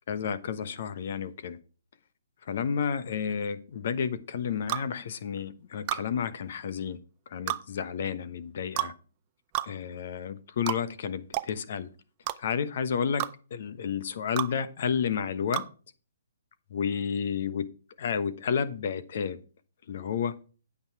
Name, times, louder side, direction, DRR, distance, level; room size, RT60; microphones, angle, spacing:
voice 1, 0.1-1.6 2.5-7.0 7.3-8.9 9.6-11.9 12.4-15.6 16.7-17.7 18.0-19.4 19.9-20.4, left 7 dB, 55° left, 14 dB, 1.1 m, -31 dB
sound 1, 4.7-4.9 5.9-6.1 7.5-7.6 8.8-8.9 9.5-9.7 10.7-10.8 11.3-11.5 12.3-12.4 13.2-13.3 14.4-14.5 15.5-15.7, right 17 dB, 30° right, 0.6 m, -30 dB
8.7 x 8.4 x 4.7 m, 0.37 s
hypercardioid pair, 145°, 0 cm